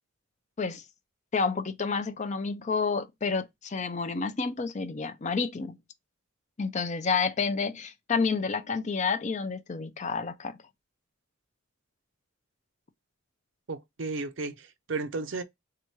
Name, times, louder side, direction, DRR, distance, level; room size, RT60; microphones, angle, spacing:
voice 1, 1.3-5.8 6.6-10.6, left 5 dB, 35° left, 0.5 m, -29 dB
voice 2, 13.7-15.4, right 3 dB, 60° right, 0.6 m, -34 dB
3.6 x 2.8 x 4.6 m
head